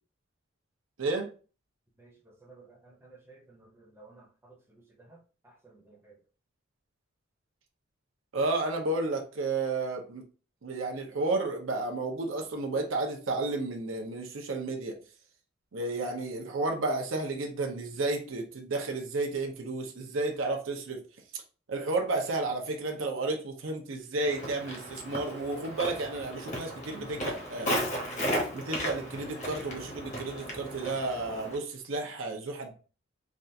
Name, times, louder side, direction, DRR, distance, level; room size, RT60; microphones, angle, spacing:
voice 1, 1.0-1.3 8.3-10.2 10.6-15.0 15.7-21.0 21.3-21.4 21.7-27.8 28.5-32.7, right 2 dB, 75° right, 3 dB, 0.7 m, -32 dB
voice 2, 2.0-6.2, right 3 dB, 10° right, -1 dB, 0.7 m, -56 dB
Walk footsteps, 24.2-31.6, equal, 35° left, 0.9 m, -35 dB
3.4 x 2.4 x 2.7 m, 0.37 s
head